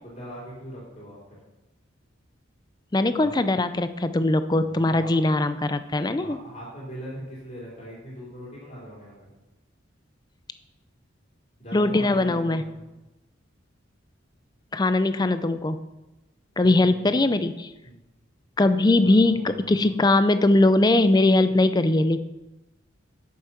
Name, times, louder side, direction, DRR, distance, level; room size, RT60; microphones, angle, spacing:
voice 1, 0.0-1.4 3.1-3.3 4.6-5.2 6.2-9.3 11.6-12.9 16.5-17.3 17.8-18.0 19.0-19.9, equal, 40° left, -7 dB, 3.1 m, -41 dB
voice 2, 2.9-6.4 11.7-12.6 14.7-15.8 16.6-17.7 18.6-22.2, left 2 dB, 20° left, 11 dB, 0.4 m, -21 dB
8.5 x 7.3 x 5.9 m, 1.0 s
head